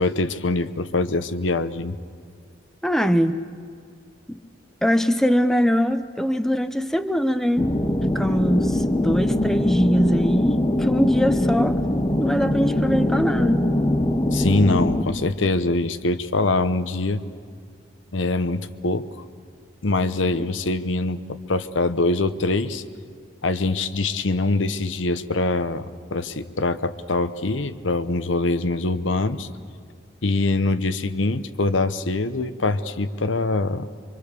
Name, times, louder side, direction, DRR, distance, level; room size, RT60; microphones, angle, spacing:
voice 1, 0.0-2.0 14.3-17.2 18.1-19.1 19.8-22.8 23.4-29.5 30.2-33.9, left 2 dB, 85° left, 12 dB, 1.0 m, -23 dB
voice 2, 2.8-3.4 4.3-4.4 4.8-7.8 8.0-11.8 12.2-13.6, equal, ahead, 9 dB, 0.7 m, -22 dB
sound 1, 7.6-15.0, left 1 dB, 25° left, 1.0 m, -22 dB
25.5 x 24.5 x 6.8 m, 2.2 s
head